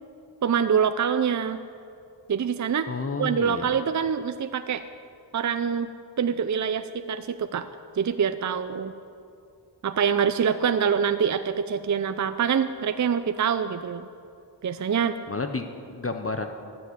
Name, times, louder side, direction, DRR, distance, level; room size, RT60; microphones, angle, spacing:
voice 1, 0.4-1.6 2.3-2.9 3.2-4.8 5.3-5.9 6.2-7.7 8.0-8.9 9.8-14.1 14.6-15.2, right 7 dB, 40° right, 10 dB, 0.5 m, -25 dB
voice 2, 2.9-3.8 15.3-16.5, left 3 dB, 30° left, 6 dB, 0.9 m, -31 dB
13.0 x 7.7 x 8.1 m, 2.5 s
cardioid pair, 45°, 45 cm